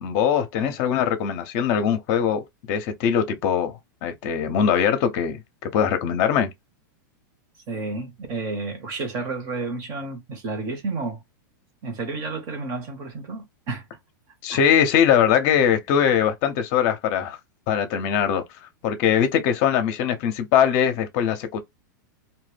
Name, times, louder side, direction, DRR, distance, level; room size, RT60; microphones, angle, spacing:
voice 1, 0.0-6.5 14.4-17.4 17.7-18.4 18.8-21.6, left 8 dB, 45° left, 0.6 m, -21 dB
voice 2, 7.7-11.2 11.8-13.8 14.5-14.6, right 3 dB, 40° right, 0.9 m, -31 dB
2.2 x 2.1 x 3.3 m
supercardioid pair, 145°, 11 cm